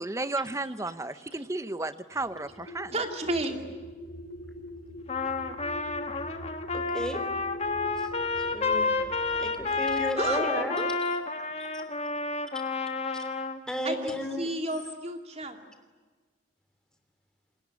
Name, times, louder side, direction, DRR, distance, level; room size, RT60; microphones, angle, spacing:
voice 1, 0.0-2.9, right 2 dB, 15° right, 13 dB, 0.8 m, -33 dB
sound 1, 2.1-10.4, left 1 dB, 80° left, 3.0 m, -43 dB
voice 2, 2.9-3.6 10.2-10.4 13.8-15.6, right 2 dB, 30° right, 5 dB, 2.4 m, -31 dB
Trumpet, 5.1-13.6, left 4 dB, 30° left, 1.6 m, -30 dB
voice 3, 6.7-7.2 8.0-8.1 8.4-11.2 11.6-11.8 13.1-13.3 13.7-14.5, equal, 5° left, 6 dB, 3.1 m, -34 dB
28.5 x 21.0 x 9.8 m, 1.4 s
head